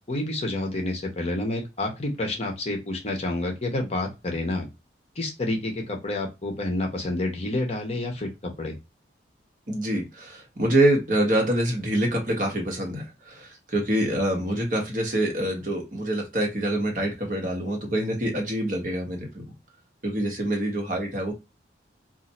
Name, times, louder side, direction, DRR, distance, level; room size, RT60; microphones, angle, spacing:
voice 1, 0.1-4.7 5.2-8.7, left 2 dB, 35° left, 2 dB, 0.8 m, -29 dB
voice 2, 9.7-19.4 20.0-21.3, right 1 dB, 45° right, 2 dB, 1.0 m, -25 dB
2.6 x 2.5 x 4.1 m, 0.25 s
head